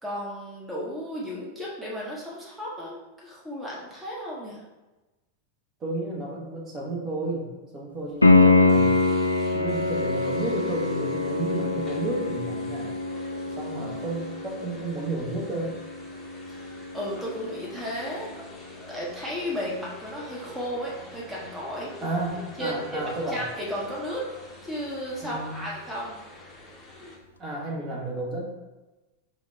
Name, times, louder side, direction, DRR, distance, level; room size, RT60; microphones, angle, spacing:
voice 1, 0.0-4.6 16.5-18.3 18.9-21.9 22.6-24.3 24.6-26.1, equal, 5° right, -5 dB, 1.2 m, -34 dB
voice 2, 5.8-9.0 9.5-12.9 13.4-15.8 22.0-23.4 25.2-25.7 27.4-28.4, right 2 dB, 25° right, -4 dB, 1.4 m, -32 dB
Piano, 8.2-18.9 22.2-22.3, left 3 dB, 80° left, 0.4 m, -25 dB
sound 1, 8.5-27.2, left 2 dB, 20° left, 1.0 m, -47 dB
4.9 x 2.8 x 3.4 m, 1.1 s
figure-of-eight pair, 90°, 0 cm